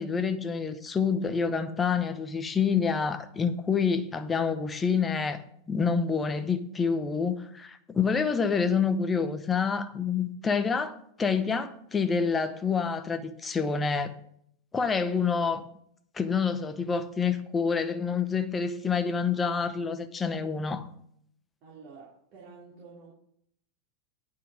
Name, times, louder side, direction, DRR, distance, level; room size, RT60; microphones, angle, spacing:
voice 1, 0.0-14.1 14.7-15.6 16.1-20.9, left 5 dB, 15° left, 0.8 m, -27 dB
voice 2, 21.6-23.1, right 4 dB, 45° right, 2.9 m, -49 dB
9.3 x 5.7 x 6.3 m
figure-of-eight pair, 90°, 0 cm